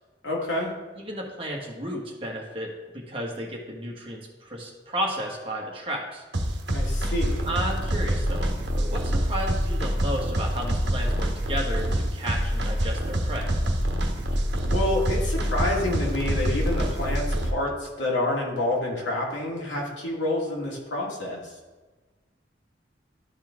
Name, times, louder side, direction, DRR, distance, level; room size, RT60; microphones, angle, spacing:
voice 1, 0.2-0.7 6.7-7.4 14.3-14.4 14.7-21.5, left 1 dB, 90° left, -3 dB, 2.1 m, -28 dB
voice 2, 1.0-6.2 7.4-13.5, equal, 30° right, -1 dB, 1.4 m, -33 dB
sound 1, 6.3-17.5, equal, 70° right, 1.1 m, -26 dB
12.0 x 4.3 x 3.6 m, 1.3 s
head